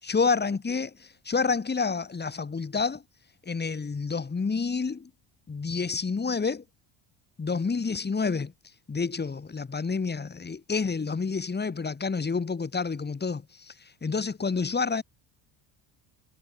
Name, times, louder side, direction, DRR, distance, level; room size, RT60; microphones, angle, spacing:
voice 1, 0.0-3.0 3.5-5.1 5.5-6.6 7.4-8.5 8.9-13.7 14.0-15.0, left 4 dB, 25° left, 6.1 m, -29 dB
supercardioid pair, 100°, 43 cm